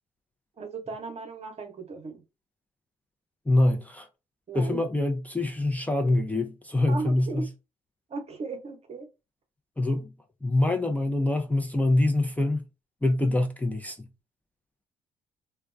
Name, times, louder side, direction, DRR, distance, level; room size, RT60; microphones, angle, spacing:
voice 1, 0.6-2.2 4.5-4.8 6.9-7.5 8.1-9.1, right 4 dB, 40° right, 0.9 m, -36 dB
voice 2, 3.5-4.1 4.5-7.5 9.8-10.1 10.4-12.6 13.0-14.1, left 2 dB, 10° left, 0.5 m, -25 dB
2.2 x 2.2 x 2.4 m
hypercardioid pair, 55°, 16 cm